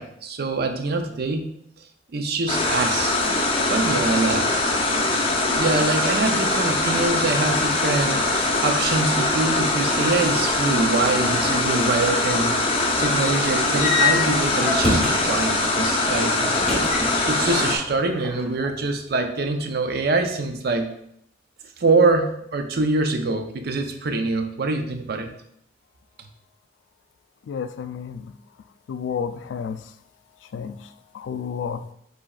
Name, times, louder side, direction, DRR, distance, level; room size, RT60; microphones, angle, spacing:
voice 1, 0.0-1.5 2.1-3.2 3.7-4.6 5.6-16.5 17.3-20.9 21.8-25.3, right 3 dB, 60° right, 6 dB, 0.5 m, -24 dB
sound 1, 2.5-17.8, left 2 dB, 30° left, 0.6 m, -22 dB
sound 2, 13.8-15.5 16.5-17.6 17.8-18.7, left 3 dB, ahead, 1.0 m, -25 dB
voice 2, 27.5-28.3 28.9-29.9 30.5-31.9, left 6 dB, 85° left, 11 dB, 0.3 m, -31 dB
5.0 x 4.0 x 2.3 m, 0.72 s
head